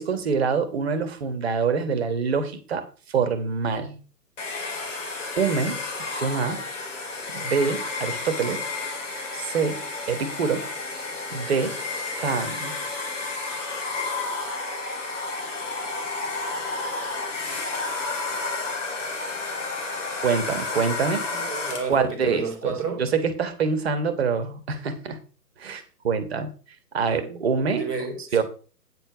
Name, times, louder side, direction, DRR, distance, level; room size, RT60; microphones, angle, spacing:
voice 1, 0.0-4.0 5.4-5.8 6.1-6.7 7.3-8.7 9.3-10.7 11.3-11.8 12.2-12.8 20.2-21.3 21.9-25.2 25.6-26.5 26.9-27.9 28.3-28.4, right 5 dB, 40° right, 1.4 m, -25 dB
Domestic sounds home sounds, 4.4-22.0, left 3 dB, 45° left, 2.7 m, -31 dB
voice 2, 21.3-23.0 27.1-27.5 27.7-28.4, right 5 dB, 5° right, 0.6 m, -31 dB
8.9 x 6.8 x 4.8 m
figure-of-eight pair, 135°, 49 cm